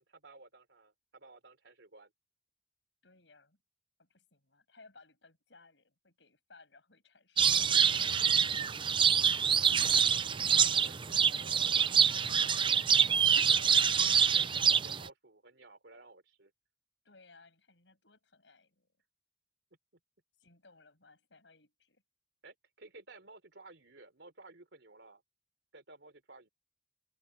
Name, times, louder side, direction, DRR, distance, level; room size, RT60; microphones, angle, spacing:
voice 1, 0.0-2.1 9.6-12.9 13.3-16.5 22.4-25.2 25.7-26.5, right 3 dB, 70° right, 3.9 m, -55 dB
voice 2, 3.0-3.6 4.0-8.2 17.0-18.9 20.4-22.0, left 3 dB, 80° left, 7.7 m, -61 dB
sound 1, 7.4-15.1, right 7 dB, 30° right, 0.5 m, -26 dB
head